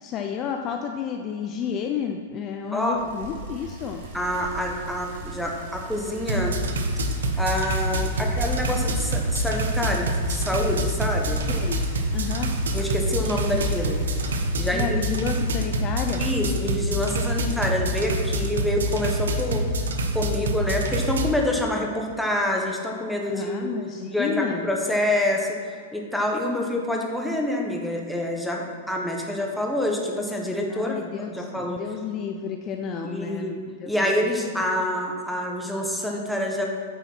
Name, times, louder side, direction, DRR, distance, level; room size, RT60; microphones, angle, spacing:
voice 1, 0.0-4.0 11.5-11.8 12.1-12.5 14.7-16.2 23.3-24.7 30.7-34.1 34.5-34.6, left 7 dB, 30° left, 4 dB, 0.5 m, -31 dB
voice 2, 2.7-3.1 4.1-6.6 7.4-11.4 12.7-14.0 14.6-15.0 16.2-19.6 20.1-23.7 24.1-25.6 25.9-31.8 33.0-33.6 33.9-36.6, left 1 dB, ahead, -1 dB, 1.2 m, -27 dB
Bicycle, 2.9-14.6, right 2 dB, 65° right, 2.1 m, -36 dB
sound 1, 6.2-21.3, right 1 dB, 90° right, 1.0 m, -26 dB
9.2 x 4.1 x 6.0 m, 2.2 s
hypercardioid pair, 135°, 0 cm